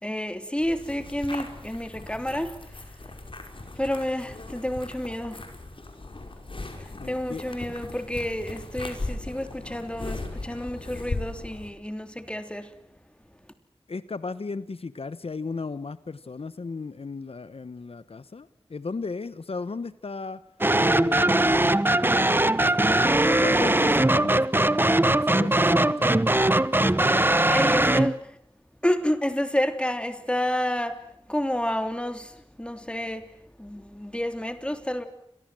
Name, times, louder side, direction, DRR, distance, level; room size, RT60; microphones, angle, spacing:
voice 1, 0.0-2.6 3.8-5.5 6.8-12.7 27.1-28.4 28.8-31.0 31.3-33.3 33.6-35.0, left 1 dB, 10° left, 3.3 m, -30 dB
sound 1, 0.6-11.7, left 2 dB, 60° left, 5.6 m, -38 dB
voice 2, 7.0-7.4 13.9-20.4 20.9-21.7 22.6-22.7 23.0-24.7 25.0-26.3, left 4 dB, 75° left, 1.0 m, -35 dB
sound 2, 20.6-28.2, right 1 dB, 20° right, 1.0 m, -21 dB
29.5 x 23.5 x 7.7 m
wide cardioid pair, 65°, 10 cm